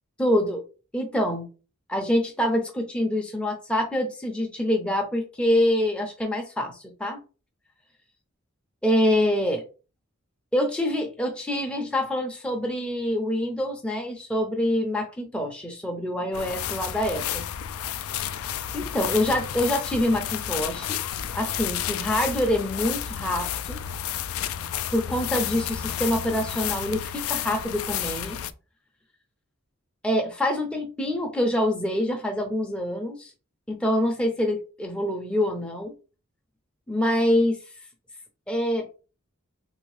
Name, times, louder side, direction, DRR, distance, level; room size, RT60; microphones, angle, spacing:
voice 1, 0.2-0.6 0.9-1.5 1.9-7.2 8.8-9.6 10.5-17.5 18.7-21.0 21.3-23.8 24.9-28.4 30.0-33.3 33.7-35.9 36.9-37.6 38.5-38.8, left 1 dB, 5° left, 2 dB, 0.5 m, -25 dB
sound 1, 16.3-28.5, left 10 dB, 80° left, 0.3 m, -31 dB
3.2 x 2.7 x 3.1 m, 0.33 s
head